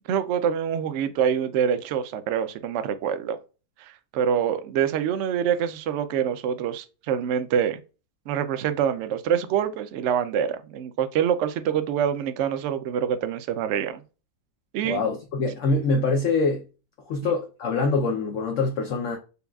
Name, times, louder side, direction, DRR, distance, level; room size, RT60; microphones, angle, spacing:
voice 1, 0.1-3.4 3.8-7.8 8.3-14.0 14.7-15.0 17.2-17.3, right 8 dB, 90° right, 0.6 m, -25 dB
voice 2, 14.8-16.6 17.1-19.2, left 3 dB, 65° left, 0.8 m, -24 dB
6.7 x 2.3 x 2.3 m
omnidirectional pair, 1.8 m